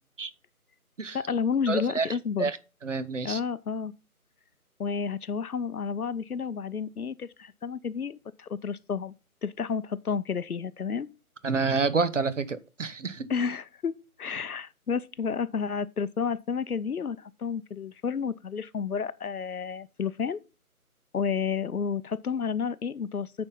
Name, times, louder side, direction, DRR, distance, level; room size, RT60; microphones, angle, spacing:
voice 1, 1.1-2.5 3.2-3.9 4.8-9.1 9.4-11.1 13.3-20.4 21.1-23.5, left 6 dB, 75° left, 0.8 m, -31 dB
voice 2, 1.7-2.6 2.8-3.4 11.4-13.3, right 4 dB, 55° right, 1.0 m, -28 dB
9.4 x 4.5 x 5.4 m
figure-of-eight pair, 155°, 45 cm